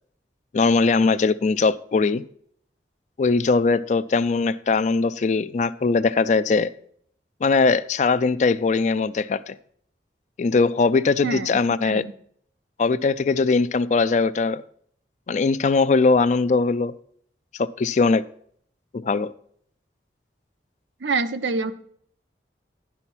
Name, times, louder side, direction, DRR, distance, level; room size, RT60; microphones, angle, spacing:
voice 1, 0.5-2.2 3.2-6.7 7.4-9.5 10.4-12.0 12.8-14.6 15.3-16.9 17.6-18.2 18.9-19.3, left 4 dB, 40° left, 15 dB, 0.3 m, -20 dB
voice 2, 21.0-21.7, right 4 dB, 85° right, 10 dB, 0.7 m, -26 dB
10.5 x 5.7 x 6.1 m, 0.63 s
head